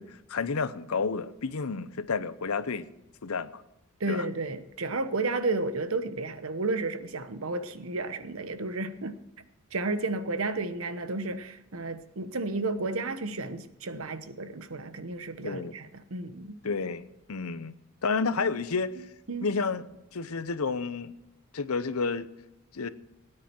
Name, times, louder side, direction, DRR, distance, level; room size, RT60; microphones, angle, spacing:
voice 1, 0.0-2.9 3.2-3.6 4.1-4.2 15.4-15.7 16.6-17.7 18.0-19.0 19.4-19.9 20.1-21.1 21.5-22.3 22.7-22.9, left 4 dB, 90° left, 0.7 m, -30 dB
voice 2, 4.0-9.2 9.7-16.6 19.3-19.5, right 3 dB, 75° right, 1.0 m, -32 dB
17.5 x 9.8 x 4.5 m
head